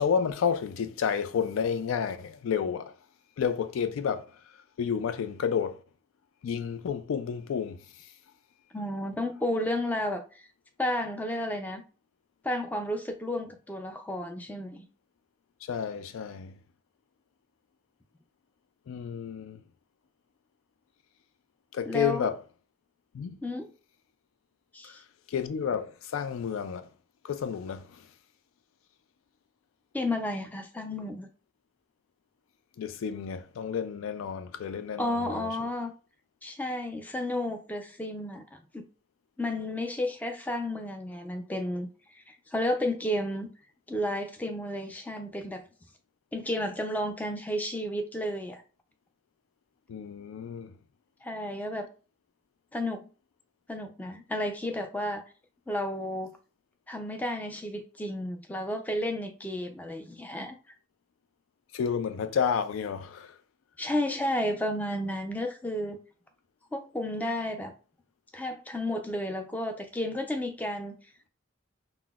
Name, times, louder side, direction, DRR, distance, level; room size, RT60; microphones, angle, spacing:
voice 1, 0.0-2.9 3.4-4.2 4.8-5.8 6.4-7.8 15.6-16.6 18.9-19.6 21.7-22.4 23.1-23.4 24.8-25.0 25.3-26.9 27.2-28.0 32.8-35.7 49.9-50.7 61.7-63.4, left 7 dB, 85° left, 0.3 m, -30 dB
voice 2, 8.7-10.4 10.8-11.8 12.4-14.9 21.9-22.3 23.4-23.7 24.7-25.0 29.9-31.3 35.0-35.9 36.4-38.8 39.4-43.5 43.9-45.6 46.3-48.6 51.2-51.9 52.7-53.1 53.7-55.2 55.7-56.4 56.9-60.6 63.8-66.0 66.7-67.7 68.3-70.9, left 1 dB, 10° left, 0.3 m, -32 dB
3.9 x 2.0 x 2.3 m
head